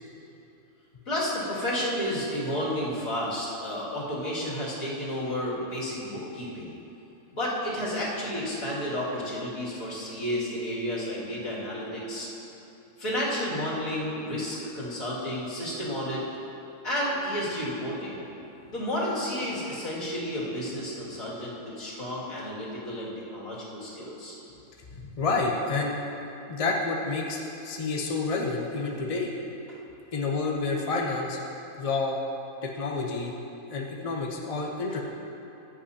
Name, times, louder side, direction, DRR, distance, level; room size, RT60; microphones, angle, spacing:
voice 1, 1.1-6.7 7.3-12.3 13.0-16.2 16.8-18.3 18.7-24.4 29.7-29.8, equal, 60° left, -8 dB, 2.9 m, -31 dB
voice 2, 24.9-26.0 26.5-29.3 30.1-31.4 31.8-32.2 32.6-33.3 33.7-35.0, left 3 dB, 30° left, -1 dB, 0.7 m, -29 dB
15.0 x 10.0 x 2.8 m, 2.9 s
omnidirectional pair, 1.6 m